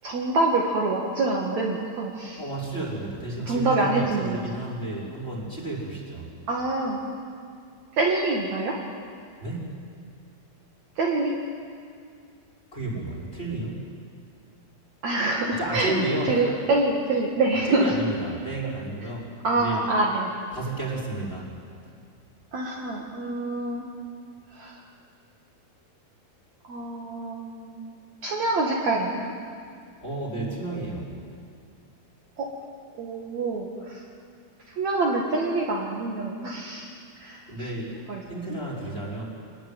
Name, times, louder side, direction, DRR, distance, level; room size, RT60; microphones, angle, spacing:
voice 1, 0.0-2.4 3.5-4.4 6.5-7.0 8.0-8.8 11.0-11.3 15.0-15.9 16.3-17.9 19.4-20.3 22.5-23.9 24.6-24.8 26.7-27.8 28.2-29.3 32.4-32.5 33.0-34.0 34.8-37.4 38.1-38.2, right 2 dB, 50° right, -2 dB, 2.8 m, -26 dB
voice 2, 2.4-6.3 9.4-9.7 12.7-13.9 15.6-16.7 17.5-19.8 20.5-21.5 30.0-31.2 37.5-38.0 38.3-39.2, right 2 dB, 15° left, -3 dB, 5.2 m, -32 dB
26.0 x 19.5 x 9.2 m, 2.2 s
omnidirectional pair, 4.5 m